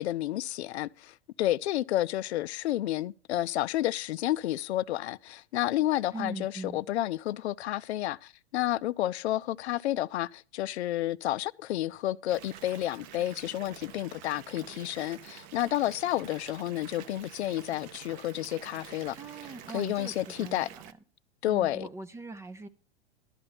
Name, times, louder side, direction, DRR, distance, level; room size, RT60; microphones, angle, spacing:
voice 1, 0.0-19.2 19.7-20.7 21.4-21.9, left 14 dB, 80° left, 0.5 m, -30 dB
voice 2, 6.1-6.8 19.1-20.9 21.5-22.7, right 3 dB, 10° right, 0.4 m, -41 dB
Water tap faucet / Bathtub (filling or washing) / Fill (with liquid), 12.3-20.9, right 10 dB, 45° right, 0.7 m, -48 dB
12.0 x 4.4 x 7.9 m
hypercardioid pair, 125°, 32 cm